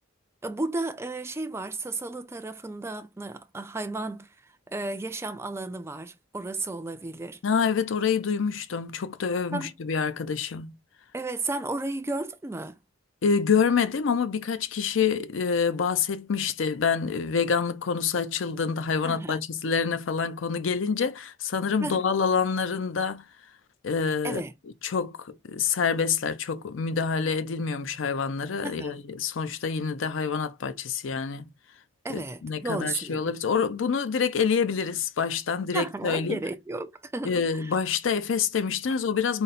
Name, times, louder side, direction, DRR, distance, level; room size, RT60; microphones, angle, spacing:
voice 1, 0.4-4.3 4.7-7.4 9.5-9.7 11.1-12.8 19.0-19.4 21.8-22.0 24.2-24.5 28.6-29.0 32.0-33.3 35.7-37.8, right 2 dB, 15° right, 0.4 m, -33 dB
voice 2, 7.4-10.7 13.2-23.2 23.8-24.4 24.8-31.5 32.1-36.4 37.2-39.4, left 6 dB, 70° left, 0.5 m, -27 dB
3.9 x 2.1 x 4.0 m
head